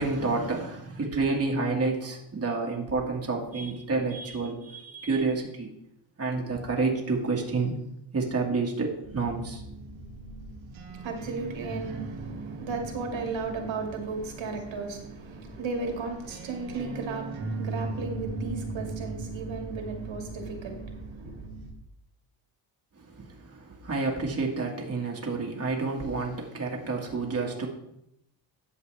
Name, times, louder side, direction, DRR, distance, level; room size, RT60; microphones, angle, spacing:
voice 1, 0.0-5.7 6.2-7.7 8.1-9.6 23.0-27.7, right 3 dB, 30° right, -1 dB, 2.0 m, -29 dB
sound 1, 9.1-21.7, right 2 dB, 90° right, 1.9 m, -38 dB
voice 2, 10.9-21.5, right 4 dB, 70° right, 2 dB, 2.2 m, -35 dB
11.0 x 7.3 x 3.4 m, 0.78 s
cardioid pair, 90°, 47 cm